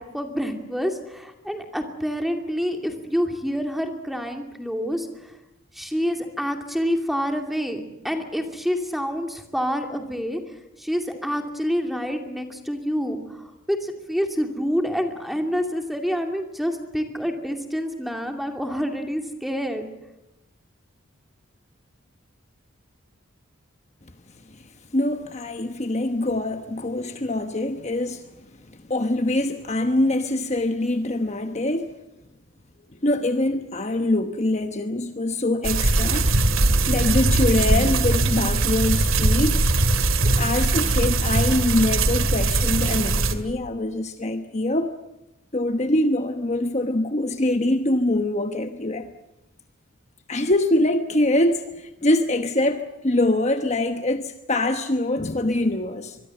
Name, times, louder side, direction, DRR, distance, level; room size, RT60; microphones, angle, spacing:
voice 1, 0.0-5.3 5.7-10.4 10.8-19.8, equal, ahead, 2.6 m, -27 dB
voice 2, 24.9-28.3 28.9-31.9 33.0-36.3 36.9-39.6 40.2-44.9 45.5-49.1 50.3-56.2, left 1 dB, 35° left, 1.1 m, -24 dB
sound 1, 35.6-43.3, right 2 dB, 80° right, 2.3 m, -21 dB
25.0 x 22.5 x 7.8 m
head